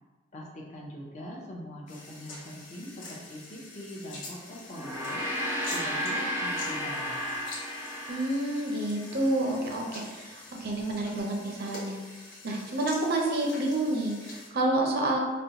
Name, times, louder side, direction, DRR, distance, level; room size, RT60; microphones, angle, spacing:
voice 1, 0.3-5.3 5.7-7.3, equal, 40° left, -2 dB, 0.6 m, -42 dB
sound 1, 1.9-14.5, left 2 dB, 80° left, 0.8 m, -46 dB
Gong, 4.7-9.3, equal, 10° right, 0.5 m, -33 dB
voice 2, 8.1-12.0 12.4-15.2, right 1 dB, 55° right, 0 dB, 0.6 m, -29 dB
4.0 x 2.1 x 2.8 m, 1.3 s
head